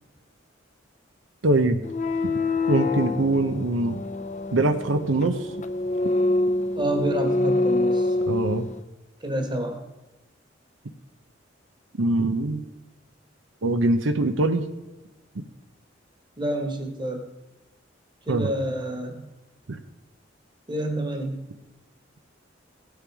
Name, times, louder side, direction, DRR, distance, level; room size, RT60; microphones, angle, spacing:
voice 1, 1.4-1.8 2.2-2.3 2.7-4.0 4.5-5.5 8.3-8.7 12.0-12.6 13.6-14.6 18.3-18.5 19.7-19.8, right 2 dB, 85° right, 9 dB, 0.8 m, -23 dB
sound 1, 1.8-8.8, left 2 dB, 40° left, 0.6 m, -26 dB
voice 2, 6.7-8.2 9.2-9.8 16.4-17.2 18.2-19.2 20.7-21.3, right 1 dB, 25° right, 5 dB, 1.5 m, -28 dB
17.0 x 6.5 x 4.8 m, 1.1 s
head